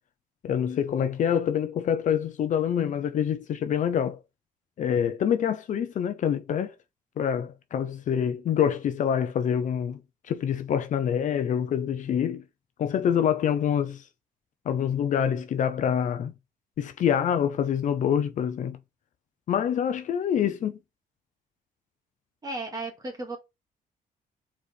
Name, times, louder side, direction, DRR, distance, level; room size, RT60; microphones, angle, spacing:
voice 1, 0.4-4.2 4.8-6.7 7.2-10.0 10.3-12.4 12.8-14.0 14.7-16.3 16.8-18.8 19.5-20.8, left 8 dB, 55° left, 0.7 m, -26 dB
voice 2, 22.4-23.4, right 2 dB, 25° right, 2.2 m, -34 dB
4.7 x 4.3 x 5.2 m
cardioid pair, 150°, 16 cm